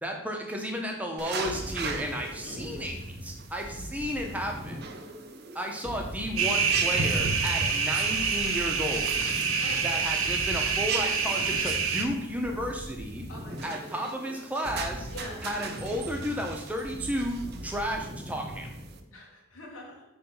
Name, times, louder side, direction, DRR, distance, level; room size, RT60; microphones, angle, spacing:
voice 1, 0.0-4.8 5.5-9.2 9.8-13.2 13.6-15.1 15.4-18.7, equal, 5° right, 1 dB, 1.0 m, -33 dB
sound 1, 1.2-19.0, right 6 dB, 50° right, 0.7 m, -42 dB
sound 2, 1.4-19.0, equal, 30° right, 1.0 m, -41 dB
voice 2, 2.4-2.8 9.6-9.8 13.3-13.7 15.1-15.4 19.1-20.0, left 1 dB, 75° left, -1 dB, 2.1 m, -44 dB
sound 3, 6.4-12.1, right 5 dB, 85° right, 1.0 m, -27 dB
8.3 x 3.4 x 5.6 m, 0.82 s
head